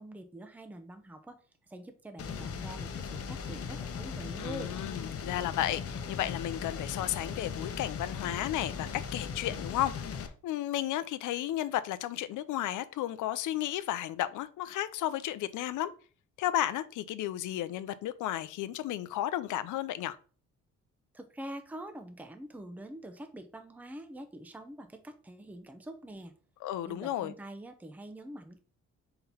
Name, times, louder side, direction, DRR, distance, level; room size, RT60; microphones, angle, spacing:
voice 1, 0.0-1.4 1.7-4.8 21.1-26.3 26.9-28.6, right 1 dB, 5° right, 0.7 m, -45 dB
sound 1, 2.2-10.3, left 6 dB, 50° left, 0.9 m, -38 dB
voice 2, 4.4-15.9 16.4-20.2 26.6-27.3, left 13 dB, 80° left, 0.6 m, -33 dB
4.5 x 3.9 x 5.5 m
cardioid pair, 90°, 30 cm